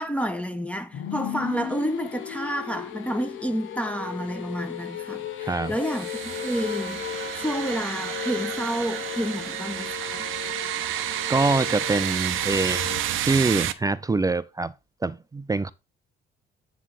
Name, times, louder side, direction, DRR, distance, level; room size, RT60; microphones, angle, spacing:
voice 1, 0.0-7.0 7.3-10.3, equal, 5° left, 1.0 m, -30 dB
sound 1, 0.9-13.0, left 9 dB, 80° left, 1.3 m, -36 dB
voice 2, 5.4-5.7 11.3-14.7 15.0-15.7, right 3 dB, 15° right, 0.5 m, -25 dB
sound 2, 5.7-13.7, right 13 dB, 85° right, 0.8 m, -30 dB
9.8 x 3.3 x 5.7 m
cardioid pair, 90°, 20 cm